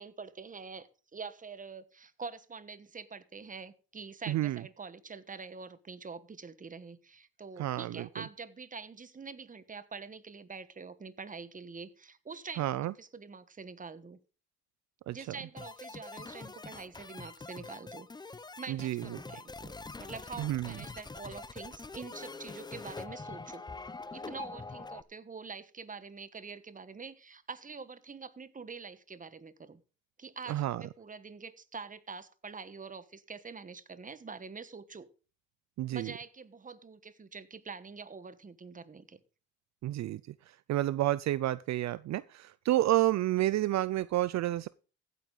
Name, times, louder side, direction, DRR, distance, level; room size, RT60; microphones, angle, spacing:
voice 1, 0.0-14.2 15.1-23.6 24.1-29.8 30.2-35.1 35.9-39.2, right 5 dB, 25° right, 1.2 m, -45 dB
voice 2, 4.3-4.6 7.6-8.1 12.6-12.9 15.1-15.2 18.7-19.0 20.4-20.7 30.5-30.8 35.8-36.1 39.8-40.2 40.7-44.7, right 15 dB, 65° right, 0.5 m, -30 dB
sound 1, 15.6-25.0, left 3 dB, 15° left, 0.6 m, -44 dB
15.5 x 9.3 x 4.0 m
cardioid pair, 90°, 30 cm